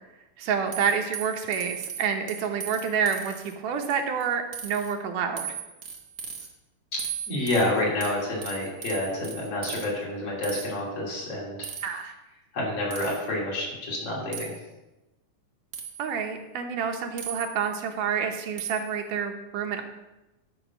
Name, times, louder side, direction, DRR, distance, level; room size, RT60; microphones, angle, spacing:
voice 1, 0.4-5.5 11.8-12.1 16.0-19.8, right 6 dB, 80° right, 4 dB, 2.5 m, -28 dB
sound 1, 0.7-3.5 3.9-4.3 4.5-4.9 5.4-6.5 7.0-9.9 10.4-10.7 11.6-12.0 12.9-13.3 14.3-14.6 15.7-16.2 17.2-17.8 18.6-19.0, right 8 dB, 60° right, 1.0 m, -38 dB
voice 2, 6.9-11.7 12.5-14.5, left 1 dB, 50° left, -4 dB, 3.7 m, -29 dB
11.0 x 5.9 x 6.0 m, 1.0 s
omnidirectional pair, 3.7 m